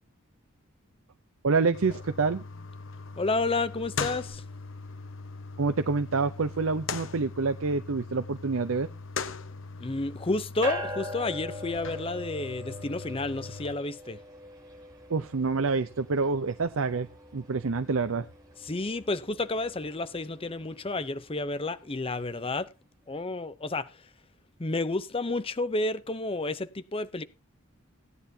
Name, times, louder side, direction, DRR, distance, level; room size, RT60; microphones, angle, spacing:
voice 1, 1.4-2.4 5.6-8.9 15.1-17.1 17.3-18.3, right 4 dB, 70° right, 0.6 m, -27 dB
sound 1, 1.7-13.7, left 4 dB, 60° left, 1.0 m, -40 dB
voice 2, 3.2-4.4 9.8-14.2 18.6-22.7 23.1-24.0 24.6-27.2, left 2 dB, 25° left, 0.7 m, -31 dB
sound 2, 10.6-22.2, equal, 20° right, 6.4 m, -43 dB
16.5 x 10.0 x 2.8 m
head